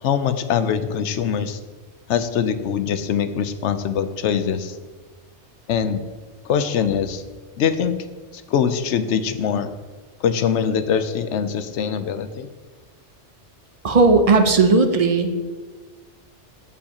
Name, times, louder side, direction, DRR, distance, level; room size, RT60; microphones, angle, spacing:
voice 1, 0.0-1.6 2.1-4.8 5.7-6.0 6.4-7.2 7.6-8.0 8.3-9.7 10.2-12.5, left 7 dB, 80° left, 11 dB, 0.9 m, -23 dB
voice 2, 13.8-15.3, right 3 dB, 40° right, 6 dB, 0.6 m, -16 dB
14.5 x 5.5 x 2.8 m, 1.4 s
omnidirectional pair, 1.2 m